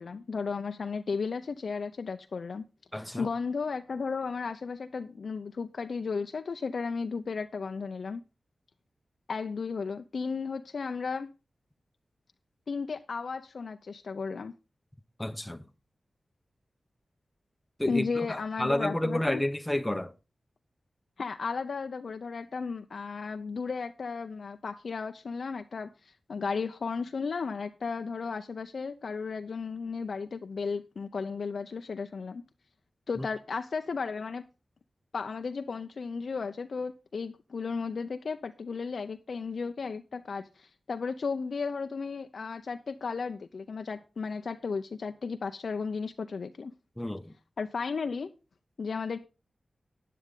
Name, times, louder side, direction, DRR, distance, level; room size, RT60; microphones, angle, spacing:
voice 1, 0.0-2.7 2.9-8.2 9.3-11.3 12.7-14.5 17.9-19.4 21.2-32.4 33.1-34.4 35.1-46.7 47.6-48.3 48.8-49.3, left 5 dB, 70° left, 0.6 m, -34 dB
voice 2, 2.9-3.3 15.2-15.6 17.8-20.1 33.2-33.3 47.0-47.3, left 1 dB, 10° left, 0.8 m, -30 dB
11.0 x 9.4 x 3.7 m
wide cardioid pair, 65°, 0 cm